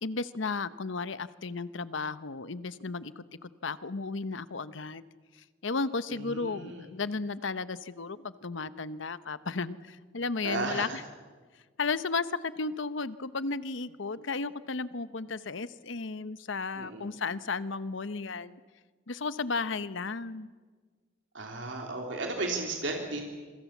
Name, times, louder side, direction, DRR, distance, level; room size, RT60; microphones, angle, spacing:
voice 1, 0.0-5.0 5.6-11.0 11.8-18.6 19.1-20.5, left 4 dB, 70° left, 15 dB, 0.9 m, -34 dB
voice 2, 6.1-6.9 10.4-11.0 16.7-17.1 21.3-23.2, right 2 dB, 65° right, 1 dB, 3.2 m, -34 dB
26.5 x 25.0 x 7.3 m, 1.5 s
head